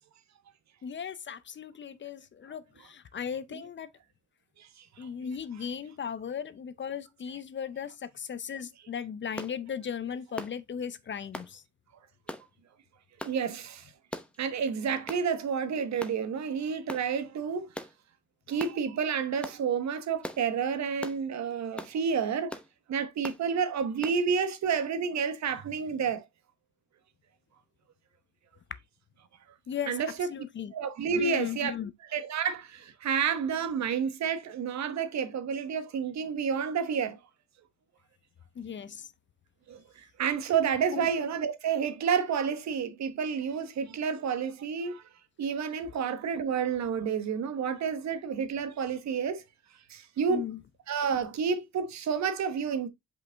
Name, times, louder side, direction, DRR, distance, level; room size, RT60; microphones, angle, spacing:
voice 1, 0.8-3.9 5.0-11.6 29.7-30.0 30.3-30.7 31.1-31.9 38.6-39.1 40.9-41.1 50.3-50.6, left 7 dB, 40° left, 0.6 m, -37 dB
voice 2, 4.6-5.1 13.2-13.9 14.4-17.7 18.5-22.6 22.9-26.2 29.9-30.3 30.7-31.8 32.1-37.2 39.7-45.0 45.4-49.4 49.9-50.4 50.9-52.9, right 6 dB, 65° right, 1.2 m, -30 dB
sound 1, 9.4-9.6 10.4-10.6 11.3-11.5 12.3-12.5 13.2-13.4 14.1-14.4 15.1-15.3 16.0-16.2 16.9-17.1 17.7-17.9 18.6-18.8 19.4-19.6 20.2-20.4 21.0-21.2 21.8-22.0 22.5-22.7 23.2-23.4 24.0-24.2, left 1 dB, 5° left, 0.9 m, -40 dB
5.5 x 5.1 x 3.4 m
cardioid pair, 90°, 30 cm